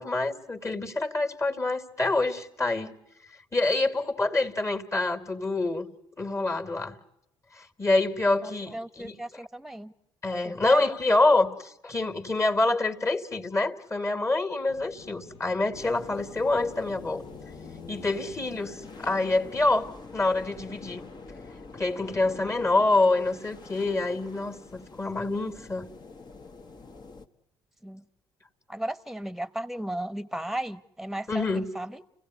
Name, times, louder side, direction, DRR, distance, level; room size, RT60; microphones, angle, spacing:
voice 1, 0.0-2.9 3.5-5.9 6.2-7.0 7.5-9.1 10.2-17.2 17.9-21.0 21.7-25.9 31.3-31.7, left 2 dB, 25° left, 2.5 m, -26 dB
voice 2, 8.4-9.9 10.4-10.9 27.8-28.0 28.7-32.0, right 1 dB, 5° right, 1.3 m, -35 dB
sound 1, 14.7-19.7, left 5 dB, 60° left, 1.4 m, -48 dB
sound 2, 15.7-27.3, left 3 dB, 45° left, 1.8 m, -46 dB
30.0 x 16.5 x 9.7 m
supercardioid pair, 65°, 11 cm